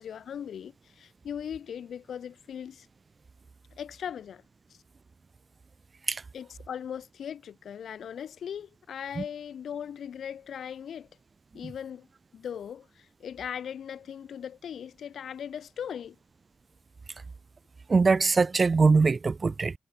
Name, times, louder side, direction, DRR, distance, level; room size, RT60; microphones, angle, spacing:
voice 1, 0.0-2.9 3.8-4.4 6.3-11.1 11.5-12.1 12.3-16.2, left 8 dB, 85° left, 6.4 m, -39 dB
voice 2, 17.9-19.7, right 4 dB, 35° right, 1.7 m, -22 dB
wide cardioid pair, 140°, 0 cm